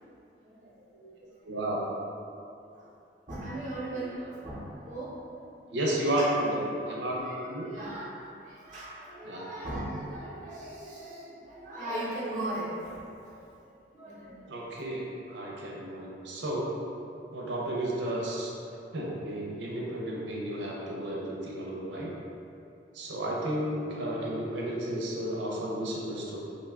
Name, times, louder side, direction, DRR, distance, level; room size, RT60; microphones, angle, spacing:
voice 1, 0.4-1.3 2.7-2.9 3.3-5.5 7.1-7.4 7.6-8.1 8.4-13.5 13.9-14.6, right 1 dB, 45° right, -7 dB, 0.8 m, -38 dB
voice 2, 1.4-1.8 5.7-6.6 6.9-7.7 9.2-9.4 14.5-16.7 17.3-18.5 18.9-22.1 22.9-26.4, right 1 dB, 80° right, -3 dB, 0.6 m, -32 dB
2.6 x 2.3 x 3.5 m, 2.6 s
head